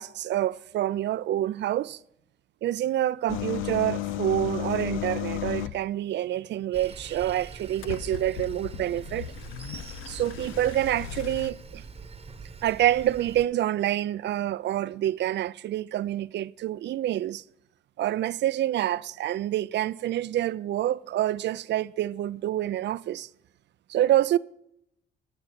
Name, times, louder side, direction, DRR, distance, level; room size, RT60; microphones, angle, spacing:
voice 1, 0.0-2.0 2.6-9.3 10.0-11.8 12.6-17.4 18.0-23.3 23.9-24.4, right 13 dB, 60° right, 0.4 m, -27 dB
sound 1, 3.3-5.8 7.8-11.5, left 13 dB, 90° left, 0.5 m, -34 dB
Sawing, 6.7-13.4, right 4 dB, 30° right, 1.0 m, -44 dB
10.5 x 7.1 x 6.6 m
cardioid pair, 90°, 20 cm